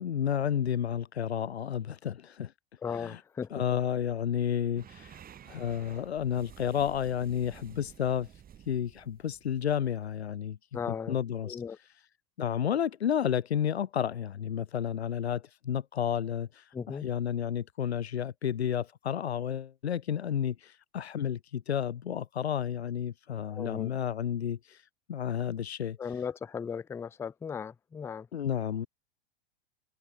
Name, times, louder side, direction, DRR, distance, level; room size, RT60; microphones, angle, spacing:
voice 1, 0.0-2.5 2.9-3.2 3.5-10.6 11.1-11.9 12.4-26.2 28.3-28.9, left 9 dB, 85° left, 1.4 m, -31 dB
voice 2, 2.8-3.8 10.7-11.2 11.4-11.8 16.7-17.1 23.5-23.9 26.0-28.3, left 6 dB, 10° left, 0.4 m, -37 dB
sound 1, 4.8-10.3, right 9 dB, 30° right, 3.4 m, -52 dB
hypercardioid pair, 95°, 31 cm